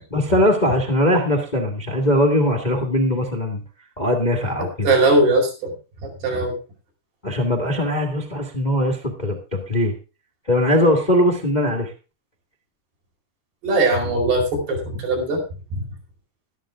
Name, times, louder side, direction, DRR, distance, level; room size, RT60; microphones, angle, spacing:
voice 1, 0.1-3.6 4.0-4.9 7.2-9.9 10.5-11.9, left 1 dB, 85° left, 1 dB, 0.4 m, -20 dB
voice 2, 4.8-5.7 6.0-6.6 13.6-15.4 15.7-15.8, right 2 dB, 85° right, 0 dB, 7.1 m, -20 dB
13.0 x 13.0 x 3.6 m, 0.32 s
omnidirectional pair, 4.6 m